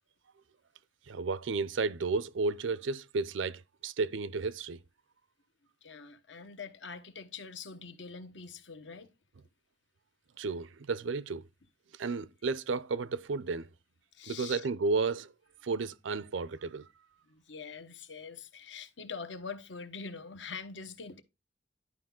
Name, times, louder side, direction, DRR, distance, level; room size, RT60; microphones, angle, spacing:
voice 1, 1.1-4.8 10.4-11.4 12.0-13.7 14.3-15.3 15.6-16.9, right 4 dB, 85° right, 0.5 m, -32 dB
voice 2, 5.8-9.1 14.1-14.6 17.3-21.2, left 5 dB, 75° left, 1.1 m, -44 dB
11.0 x 4.9 x 3.7 m
head